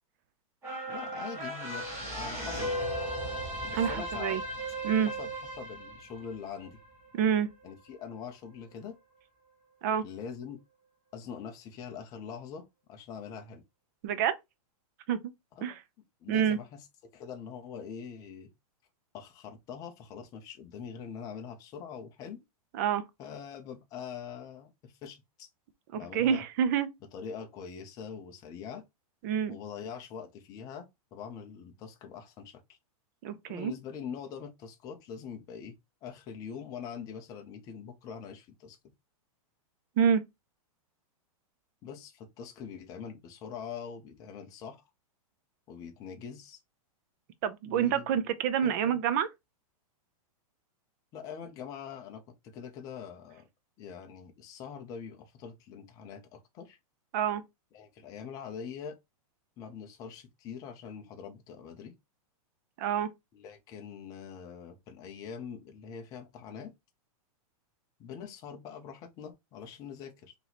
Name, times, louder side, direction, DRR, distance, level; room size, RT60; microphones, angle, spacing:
sound 1, 0.6-7.3 7.7-7.8, right 1 dB, 10° right, 1.2 m, -36 dB
voice 1, 0.9-2.7 3.6-4.4 5.1-5.3 5.6-6.8 7.6-9.0 10.0-10.6 11.1-13.6 15.6-15.8 16.2-16.9 17.1-18.5 19.1-22.4 23.2-25.5 25.9-26.4 27.1-28.8 29.5-32.8 33.5-35.8 36.0-38.8 41.8-44.8 45.7-46.6 47.6-48.1 48.6-49.0 51.1-53.5 53.8-56.8 57.7-59.0 59.6-61.9 63.3-66.7 68.0-70.3, left 7 dB, 20° left, 0.6 m, -43 dB
voice 2, 3.7-4.4 4.8-5.1 7.2-7.5 9.8-10.0 14.0-14.4 15.1-15.2 15.6-15.8 16.3-16.6 22.7-23.0 25.9-26.9 29.2-29.6 33.2-33.7 40.0-40.2 47.4-49.3 57.1-57.4 62.8-63.1, right 8 dB, 30° right, 0.4 m, -27 dB
3.0 x 2.9 x 3.9 m
supercardioid pair, 170°, 19 cm